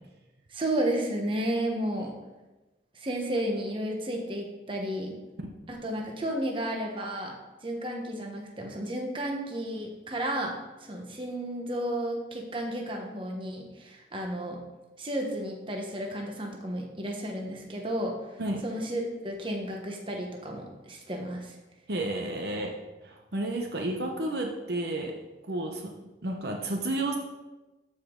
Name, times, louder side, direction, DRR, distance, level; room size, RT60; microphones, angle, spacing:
voice 1, 0.5-2.1 2.9-5.1 5.7-7.3 7.6-10.5 10.8-14.6 15.0-21.6, right 1 dB, 30° right, 1 dB, 1.2 m, -32 dB
voice 2, 21.9-22.7 23.0-25.2 25.5-27.2, right 1 dB, 60° right, 2 dB, 0.9 m, -31 dB
13.5 x 5.1 x 3.8 m, 1.1 s
head